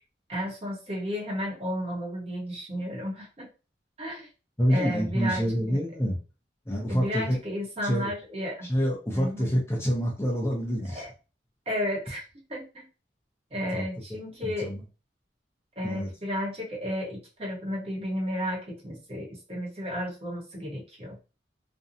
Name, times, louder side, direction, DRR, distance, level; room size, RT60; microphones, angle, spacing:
voice 1, 0.3-3.5 4.0-4.3 4.7-5.8 6.9-8.7 9.1-9.5 10.9-11.1 11.7-12.9 13.5-14.7 15.8-21.2, equal, 35° right, -2 dB, 0.8 m, -33 dB
voice 2, 4.6-6.2 6.7-7.4 7.8-8.1 8.7-11.0 13.7-13.8 14.4-14.8 15.8-16.1, equal, 15° left, -2 dB, 0.5 m, -27 dB
2.5 x 2.0 x 2.6 m, 0.33 s
head